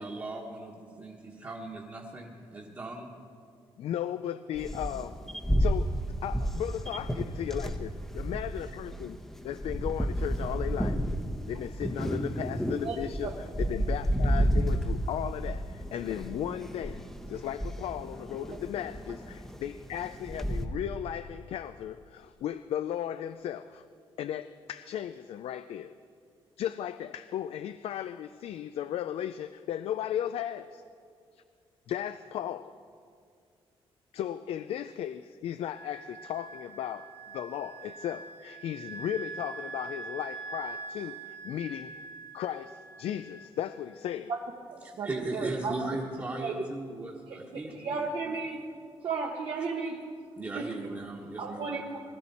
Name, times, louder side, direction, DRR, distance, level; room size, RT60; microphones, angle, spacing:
voice 1, 0.0-3.1 44.8-48.1 49.6-49.7 50.4-51.7, right 2 dB, 25° right, -3 dB, 1.4 m, -38 dB
voice 2, 3.8-5.2 5.6-9.2 9.4-11.0 11.5-13.3 13.6-17.0 17.3-23.8 24.2-25.9 26.6-30.8 31.3-31.4 31.9-32.7 34.1-37.1 37.3-42.1 42.3-44.3, left 10 dB, 80° left, 12 dB, 0.4 m, -36 dB
sound 1, 4.6-20.7, equal, 5° left, 0.9 m, -32 dB
Wind instrument woodwind instrument, 35.7-44.0, right 4 dB, 55° left, 1.9 m, -44 dB
voice 3, 44.7-45.7 46.4-46.6 47.3-48.6 49.0-50.0 50.5-50.7 51.4-52.0, right 4 dB, 60° right, -1 dB, 1.1 m, -34 dB
20.0 x 13.0 x 4.2 m, 2.3 s
cardioid pair, 135°, 10 cm